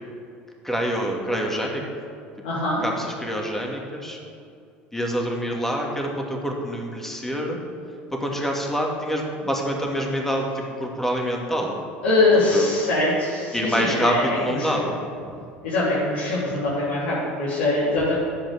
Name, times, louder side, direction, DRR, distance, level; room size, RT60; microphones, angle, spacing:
voice 1, 0.6-2.1 2.8-4.2 4.9-7.6 8.1-11.8 12.5-12.7 13.5-15.4 16.3-16.4, equal, 5° left, 0 dB, 2.3 m, -26 dB
voice 2, 2.4-2.8 12.0-14.8 15.6-18.1, left 2 dB, 80° left, -10 dB, 3.3 m, -22 dB
10.0 x 8.6 x 6.7 m, 2.5 s
hypercardioid pair, 75°, 6 cm